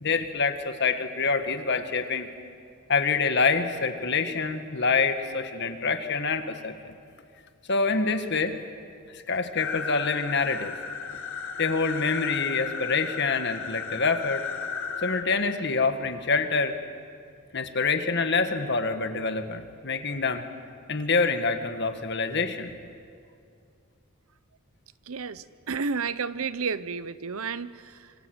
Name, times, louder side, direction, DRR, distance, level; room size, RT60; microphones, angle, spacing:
voice 1, 0.0-2.3 2.9-6.9 7.7-8.6 9.1-10.7 11.6-14.5 15.0-16.8 17.5-20.4 20.9-22.7, left 4 dB, 55° left, 7 dB, 1.8 m, -26 dB
sound 1, 9.6-15.2, left 6 dB, 70° left, 1.8 m, -34 dB
voice 2, 25.1-28.1, right 5 dB, 85° right, 16 dB, 0.8 m, -32 dB
26.5 x 25.5 x 8.0 m, 2.3 s
head